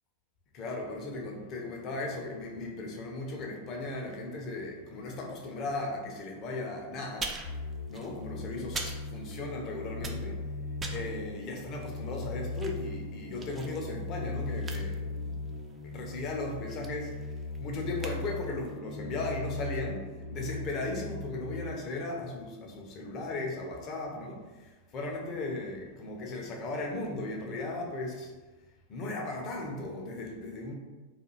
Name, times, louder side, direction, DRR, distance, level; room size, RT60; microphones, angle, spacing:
voice 1, 0.5-7.3 7.9-10.4 10.9-15.0 15.3-15.4 15.8-17.1 17.6-24.4 24.9-28.3 28.9-30.7, left 2 dB, 35° left, 1 dB, 0.5 m, -37 dB
sound 1, 7.1-9.6 9.9-18.8, right 3 dB, 20° right, 0.3 m, -44 dB
sound 2, 7.4-21.7, left 3 dB, 85° left, 0.8 m, -38 dB
2.4 x 2.3 x 2.9 m, 1.3 s
figure-of-eight pair, 90°, 0 cm